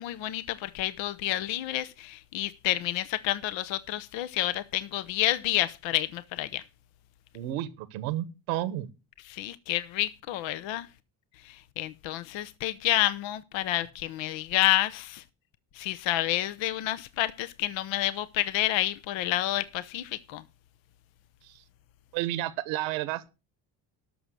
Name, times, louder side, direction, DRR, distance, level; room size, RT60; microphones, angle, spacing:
voice 1, 0.0-6.6 9.3-10.9 11.4-15.2 15.7-20.4, left 15 dB, 65° left, 0.8 m, -29 dB
voice 2, 7.3-8.9 21.4-21.6 22.1-23.3, right 14 dB, 85° right, 1.3 m, -31 dB
12.0 x 6.2 x 6.4 m
supercardioid pair, 75°, 48 cm